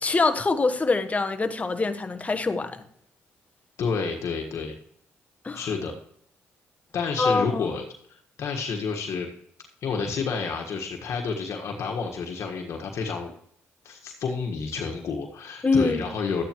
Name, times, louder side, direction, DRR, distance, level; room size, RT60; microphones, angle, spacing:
voice 1, 0.0-2.8 5.4-5.7 7.2-7.7 15.6-16.1, left 3 dB, 25° left, 1.1 m, -24 dB
voice 2, 3.8-4.7 5.5-5.9 6.9-9.3 9.8-13.3 13.8-16.4, left 5 dB, 60° left, 1.5 m, -30 dB
13.0 x 9.0 x 3.0 m
supercardioid pair, 70°, 5 cm